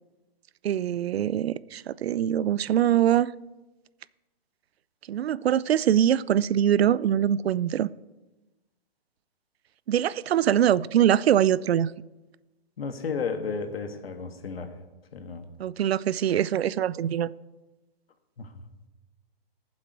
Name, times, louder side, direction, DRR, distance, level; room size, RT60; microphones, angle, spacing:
voice 1, 0.6-3.3 5.1-7.9 9.9-11.9 15.6-17.3, right 10 dB, 85° right, 0.5 m, -23 dB
voice 2, 12.8-14.7 15.1-15.5 18.4-18.5, left 5 dB, 75° left, 1.6 m, -33 dB
16.5 x 7.4 x 4.7 m
hypercardioid pair, 175°, 30 cm